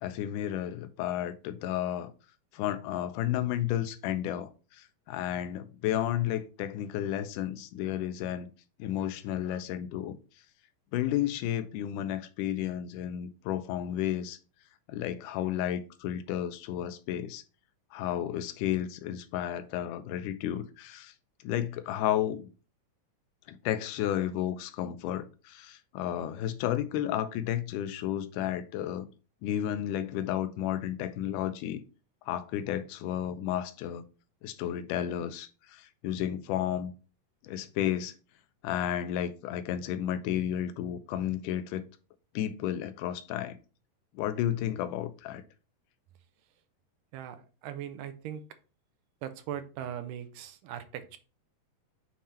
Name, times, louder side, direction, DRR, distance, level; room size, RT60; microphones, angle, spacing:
voice 1, 0.0-2.1 2.5-8.5 8.8-10.2 10.9-14.4 14.9-17.4 17.9-21.1 21.4-22.5 23.5-29.1 29.4-31.8 32.3-34.0 34.4-36.9 37.4-38.1 38.6-41.8 42.4-43.6 44.1-45.4, left 11 dB, 80° left, 1.9 m, -32 dB
voice 2, 47.1-48.4 49.2-51.2, right 10 dB, 75° right, 2.0 m, -39 dB
7.2 x 3.7 x 4.3 m
omnidirectional pair, 4.2 m